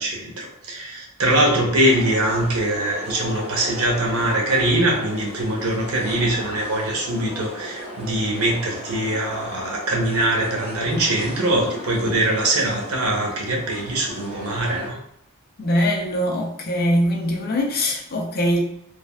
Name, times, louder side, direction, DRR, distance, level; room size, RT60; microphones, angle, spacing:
voice 1, 0.0-15.0, right 1 dB, 80° right, 0.8 m, -22 dB
sound 1, 1.8-14.9, equal, 5° right, 1.3 m, -36 dB
voice 2, 15.6-18.6, equal, 45° left, 0.5 m, -22 dB
3.3 x 2.3 x 2.2 m
head